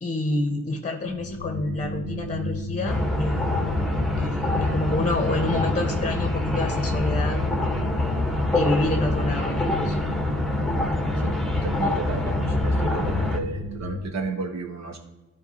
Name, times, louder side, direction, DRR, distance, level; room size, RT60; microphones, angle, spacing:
voice 1, 0.0-3.4 4.2-7.4 8.5-10.0, left 2 dB, 25° left, 4 dB, 0.9 m, -28 dB
sound 1, 1.0-14.0, left 2 dB, 80° right, 1.5 m, -33 dB
sound 2, 2.8-13.4, left 2 dB, ahead, 1.2 m, -25 dB
voice 2, 11.2-15.0, right 4 dB, 60° right, 5 dB, 1.2 m, -33 dB
11.5 x 4.5 x 2.8 m, 1.1 s
supercardioid pair, 55°, 30 cm